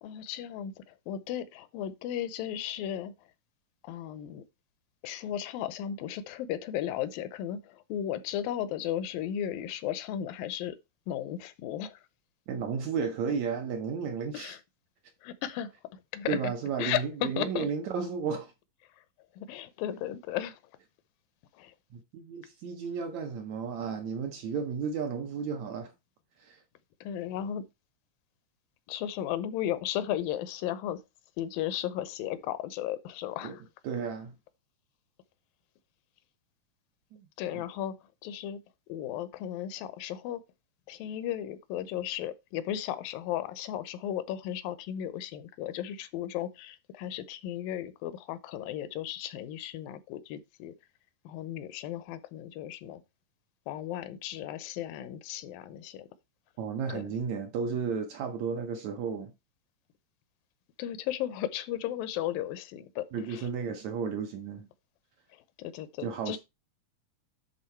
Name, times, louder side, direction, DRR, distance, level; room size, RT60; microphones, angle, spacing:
voice 1, 0.0-3.1 3.8-4.4 5.0-10.8 11.1-12.0 14.3-14.6 15.2-16.5 16.8-17.7 19.4-20.6 21.6-21.7 27.0-27.6 28.9-31.0 31.4-33.6 37.4-37.9 38.2-38.6 38.9-40.4 40.9-50.7 51.3-53.0 53.7-56.1 56.9-57.0 60.8-63.5 65.6-66.4, left 11 dB, 85° left, 2.4 m, -35 dB
voice 2, 12.5-14.6 16.3-18.5 21.9-25.9 26.4-26.6 33.4-33.6 33.8-34.3 37.1-37.2 37.5-37.6 56.6-59.3 63.1-64.7 66.0-66.4, right 6 dB, 75° right, 1.7 m, -33 dB
10.5 x 3.8 x 4.4 m
omnidirectional pair, 4.0 m